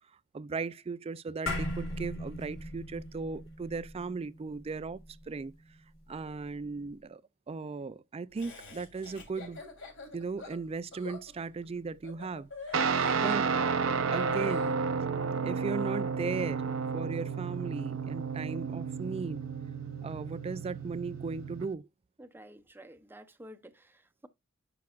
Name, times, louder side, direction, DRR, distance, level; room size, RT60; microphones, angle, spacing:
voice 1, 0.3-5.0 5.3-5.5 6.1-7.2 7.5-9.6 10.1-13.5 14.1-14.7 15.4-19.4 20.0-21.9, right 4 dB, 30° right, 0.3 m, -37 dB
sound 1, 1.5-6.1, left 1 dB, 85° left, 3.3 m, -38 dB
Laughter, 8.4-14.7, left 4 dB, 65° left, 3.2 m, -47 dB
Guitar, 12.7-21.7, right 5 dB, 75° right, 0.7 m, -32 dB
voice 2, 22.2-24.3, equal, 10° right, 0.7 m, -51 dB
10.5 x 6.0 x 2.4 m
head